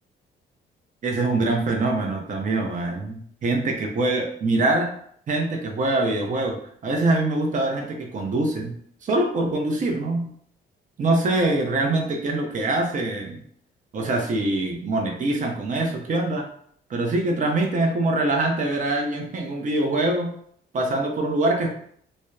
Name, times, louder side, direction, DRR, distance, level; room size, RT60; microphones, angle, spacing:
voice 1, 1.0-4.9 5.3-6.6 6.8-8.7 9.0-10.3 11.0-13.4 13.9-16.5 16.9-20.3 20.7-21.7, right 2 dB, 40° right, 1 dB, 0.5 m, -24 dB
2.7 x 2.0 x 2.2 m, 0.62 s
cardioid pair, 90°, 20 cm